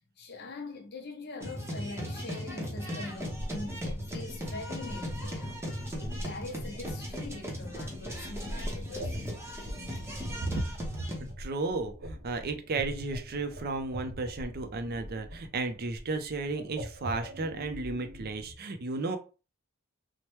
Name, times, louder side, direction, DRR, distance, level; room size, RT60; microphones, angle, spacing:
voice 1, 0.2-9.3 9.9-10.1, left 3 dB, 50° left, 0.7 m, -43 dB
sound 1, 1.4-11.3, equal, 10° right, 0.7 m, -38 dB
sound 2, 3.2-18.6, equal, 85° right, 0.7 m, -43 dB
voice 2, 11.4-19.2, right 3 dB, 45° right, 0.5 m, -33 dB
3.1 x 2.1 x 3.0 m
head